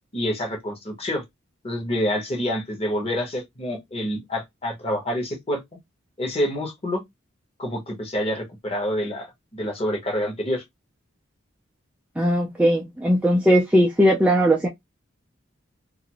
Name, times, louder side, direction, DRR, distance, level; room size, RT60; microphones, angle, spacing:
voice 1, 0.1-1.2 1.6-5.6 6.2-7.0 7.6-10.6, equal, 30° left, 0.9 m, -27 dB
voice 2, 12.2-14.7, equal, 5° right, 0.3 m, -19 dB
2.5 x 2.4 x 2.9 m
head